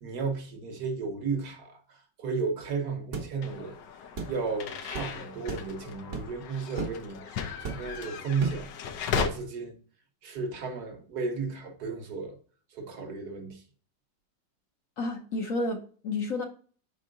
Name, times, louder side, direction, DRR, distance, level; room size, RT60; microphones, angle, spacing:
voice 1, 0.0-3.8 4.3-8.7 9.1-9.8 10.2-12.4 12.7-13.6, right 4 dB, 65° right, 1.4 m, -34 dB
sound 1, 3.1-3.3 4.2-4.4 4.9-5.1 5.5-5.7 6.1-6.4 6.8-7.0 7.6-8.0 8.4-8.7, right 4 dB, 50° right, 1.2 m, -35 dB
sound 2, 3.4-9.3, left 6 dB, 75° left, 1.4 m, -36 dB
voice 2, 15.0-16.4, left 2 dB, 55° left, 1.0 m, -31 dB
5.4 x 4.6 x 3.8 m
omnidirectional pair, 2.0 m